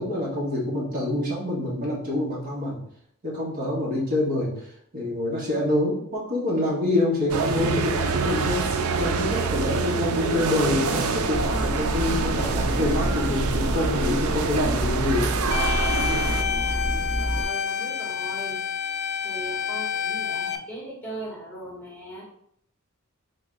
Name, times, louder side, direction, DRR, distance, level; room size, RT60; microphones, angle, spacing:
voice 1, 0.0-2.8 3.2-4.5 4.9-8.7 9.0-15.3, left 1 dB, 45° right, -5 dB, 1.6 m, -26 dB
sound 1, 7.3-16.4, right 4 dB, 90° right, 0.4 m, -26 dB
sound 2, 11.3-17.5, equal, 15° right, 1.7 m, -28 dB
sound 3, 15.5-20.6, left 7 dB, 50° left, 0.4 m, -28 dB
voice 2, 16.4-16.8 17.2-18.6 19.2-22.2, right 1 dB, 10° left, -5 dB, 1.7 m, -39 dB
3.8 x 3.0 x 3.8 m, 0.68 s
head